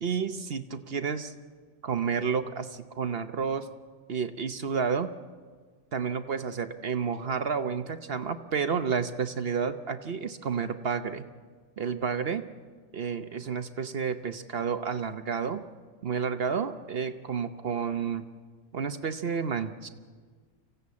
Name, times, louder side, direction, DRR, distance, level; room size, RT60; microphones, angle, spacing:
voice 1, 0.0-1.3 1.8-3.7 4.1-5.1 5.9-11.3 11.8-12.4 12.9-15.6 16.0-18.3 18.7-19.9, right 6 dB, 50° right, 9 dB, 0.9 m, -30 dB
25.0 x 16.0 x 8.4 m, 1.5 s
omnidirectional pair, 1.4 m